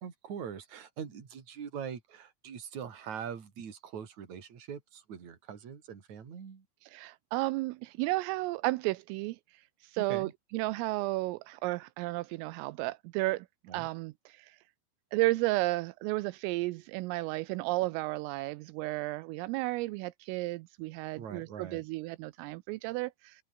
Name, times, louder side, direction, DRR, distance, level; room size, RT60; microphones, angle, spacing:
voice 1, 0.0-6.7 10.0-10.3 13.7-13.9 21.2-21.8, right 7 dB, 40° right, 4.0 m, -42 dB
voice 2, 6.9-9.4 9.8-13.5 13.7-14.6 15.1-23.4, right 21 dB, 85° right, 3.3 m, -33 dB
omnidirectional pair, 6.0 m